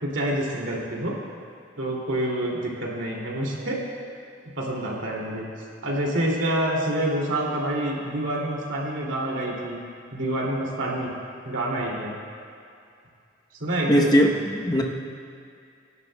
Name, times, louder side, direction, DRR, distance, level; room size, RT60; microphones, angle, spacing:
voice 1, 0.0-1.1 1.8-3.8 4.6-5.5 5.8-9.8 10.1-11.2 11.4-12.1 13.6-14.3, right 1 dB, 75° right, -3 dB, 2.4 m, -27 dB
voice 2, 13.9-14.8, equal, 20° left, 0 dB, 0.8 m, -20 dB
23.5 x 11.0 x 2.2 m, 2.4 s
head